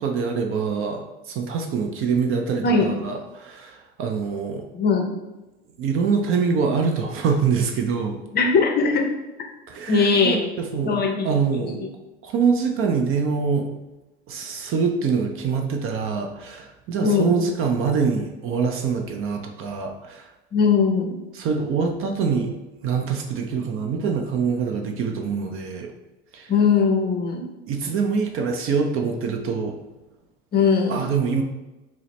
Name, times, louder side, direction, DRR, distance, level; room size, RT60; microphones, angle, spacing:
voice 1, 0.0-4.7 5.8-8.2 9.7-11.8 12.2-13.7 14.3-20.3 21.3-22.5 22.8-25.9 26.3-26.5 27.7-29.8 30.9-31.4, right 5 dB, 40° right, 3 dB, 0.5 m, -24 dB
voice 2, 2.6-2.9 4.7-5.1 8.3-9.1 9.9-10.4 10.8-11.3 11.6-11.9 17.0-17.3 20.5-21.2 26.5-27.5 30.5-31.0, left 5 dB, 30° left, 2 dB, 0.6 m, -20 dB
4.7 x 2.0 x 3.1 m, 1.1 s
supercardioid pair, 100°, 32 cm